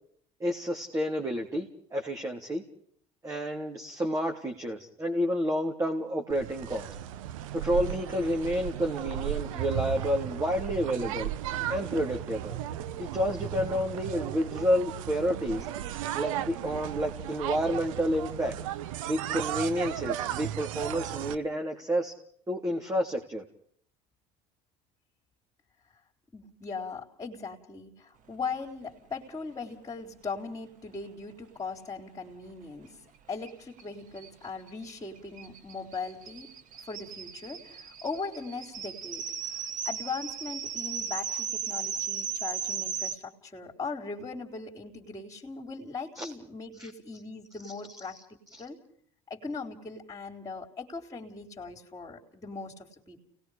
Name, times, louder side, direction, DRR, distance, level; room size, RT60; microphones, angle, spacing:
voice 1, 0.4-2.6 3.2-6.9 7.5-11.3 11.7-12.6 13.0-15.7 16.1-18.6 19.0-22.1 22.5-23.4 46.2-46.3 46.8-46.9 48.5-48.6, equal, 20° right, 1 dB, 3.3 m, -30 dB
sound 1, 6.3-21.3, right 11 dB, 85° right, 1.1 m, -35 dB
voice 2, 26.3-33.0 33.3-36.5 36.8-48.8 49.3-53.2, left 4 dB, 20° left, 0 dB, 4.0 m, -39 dB
sound 2, 33.5-33.6 33.8-33.9 34.2-43.1, right 7 dB, 50° right, 2.3 m, -36 dB
30.0 x 19.5 x 5.0 m, 0.62 s
supercardioid pair, 90°, 17 cm